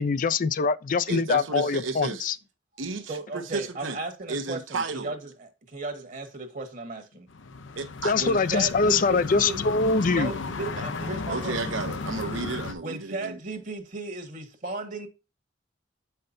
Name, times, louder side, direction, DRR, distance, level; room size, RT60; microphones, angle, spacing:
voice 1, 0.0-2.3 8.0-10.3, left 4 dB, 45° left, 0.4 m, -23 dB
voice 2, 1.1-2.3 2.8-4.0 4.3-5.1 7.8-8.1 11.3-13.4, right 3 dB, 90° right, 1.0 m, -33 dB
voice 3, 3.1-7.3 8.2-9.6 10.1-11.5 12.8-15.1, right 3 dB, 40° right, 1.3 m, -35 dB
sound 1, 7.3-12.7, left 3 dB, 80° left, 0.7 m, -34 dB
7.8 x 5.6 x 2.6 m
head